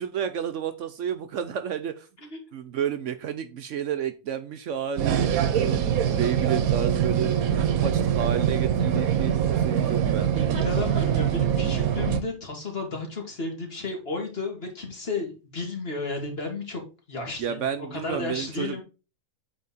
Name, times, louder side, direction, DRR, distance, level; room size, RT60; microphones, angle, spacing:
voice 1, 0.0-2.1 2.5-5.8 6.2-10.5 17.4-18.8, right 8 dB, 65° right, 0.9 m, -31 dB
sound 1, 5.0-12.2, right 9 dB, 85° right, 1.2 m, -24 dB
voice 2, 10.2-16.8 17.1-18.8, left 3 dB, 45° left, 2.1 m, -33 dB
8.4 x 3.7 x 4.1 m
omnidirectional pair, 1.5 m